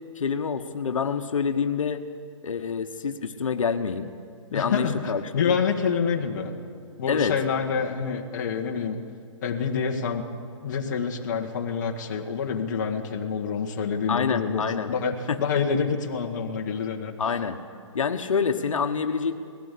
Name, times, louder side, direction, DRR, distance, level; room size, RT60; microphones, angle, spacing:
voice 1, 0.1-2.1 2.4-4.1 4.5-5.6 7.1-7.4 14.1-14.9 15.3-15.4 17.2-17.6 17.9-19.3, left 6 dB, 80° left, 6 dB, 1.2 m, -27 dB
voice 2, 4.5-6.5 7.0-9.0 9.4-10.3 10.6-14.6 14.9-17.1, left 6 dB, 35° left, 2 dB, 1.6 m, -27 dB
19.5 x 17.0 x 8.4 m, 2.2 s
hypercardioid pair, 165°, 17 cm